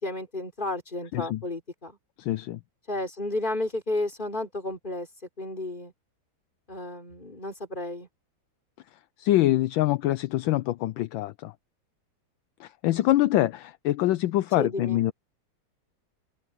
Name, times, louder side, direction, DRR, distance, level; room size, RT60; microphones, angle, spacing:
voice 1, 0.0-2.0 2.9-5.1 5.4-5.9 6.7-8.1 14.6-15.0, left 2 dB, 20° left, 4.3 m, -32 dB
voice 2, 2.2-2.6 9.2-11.5 12.6-15.1, left 15 dB, 75° left, 1.3 m, -24 dB
open air
omnidirectional pair, 2.2 m